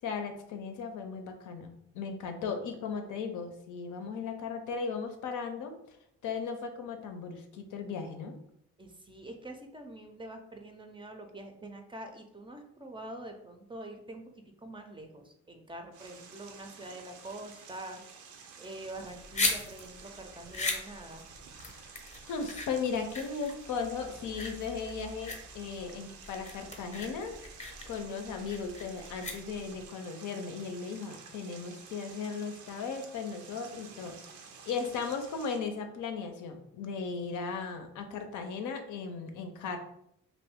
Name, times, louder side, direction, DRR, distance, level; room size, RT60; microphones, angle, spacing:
voice 1, 0.0-5.7 6.2-8.3 21.6-21.8 22.3-27.4 27.9-34.2 34.7-39.8, left 5 dB, 80° left, 6 dB, 0.6 m, -37 dB
voice 2, 8.8-14.3 14.6-18.0 18.6-21.3, right 1 dB, 15° right, 4 dB, 0.4 m, -45 dB
sound 1, 15.9-35.6, right 6 dB, 85° right, 0.5 m, -51 dB
sound 2, 18.9-29.9, left 3 dB, 25° left, 0.7 m, -38 dB
2.6 x 2.5 x 3.5 m, 0.75 s
cardioid pair, 90°, 30 cm